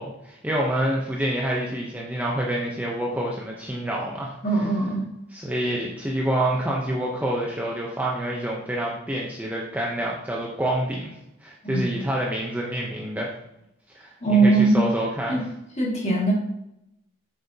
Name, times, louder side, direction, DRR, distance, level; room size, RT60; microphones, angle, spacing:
voice 1, 0.0-4.7 5.3-11.1 11.4-13.3 13.9-15.5, right 1 dB, 5° right, -3 dB, 0.8 m, -27 dB
voice 2, 4.4-5.1 11.6-12.0 14.2-14.8 15.3-15.4 15.8-16.3, right 3 dB, 30° left, -3 dB, 2.2 m, -21 dB
8.4 x 6.6 x 2.8 m, 0.82 s
head